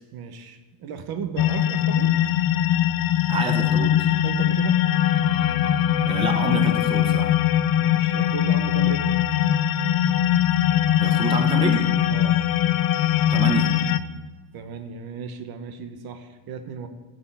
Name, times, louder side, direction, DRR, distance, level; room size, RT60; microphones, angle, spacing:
voice 1, 0.1-2.1 4.2-4.8 7.7-9.1 12.1-12.4 14.5-16.9, right 6 dB, 50° right, 9 dB, 1.1 m, -35 dB
sound 1, 1.4-14.0, left 11 dB, 45° left, 0.6 m, -21 dB
voice 2, 3.3-4.1 6.1-7.3 11.0-11.9 13.3-13.7, right 3 dB, 10° right, 4 dB, 0.8 m, -27 dB
14.5 x 5.4 x 8.4 m, 1.2 s
cardioid pair, 170°, 49 cm